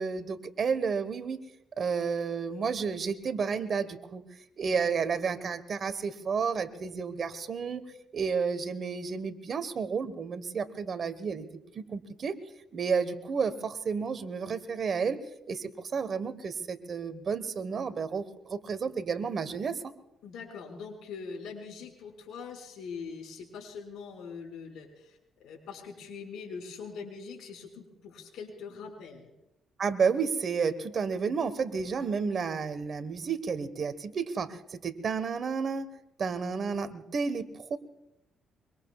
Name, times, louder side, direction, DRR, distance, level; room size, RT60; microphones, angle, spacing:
voice 1, 0.0-1.4 1.8-4.2 4.6-7.8 8.1-11.5 11.7-12.3 12.7-15.2 15.5-19.9 29.8-35.9 36.2-37.8, right 5 dB, 50° right, 11 dB, 1.3 m, -31 dB
voice 2, 20.2-29.3, left 5 dB, 80° left, 2 dB, 5.6 m, -43 dB
24.5 x 24.0 x 2.4 m, 0.86 s
cardioid pair, 90°, 0 cm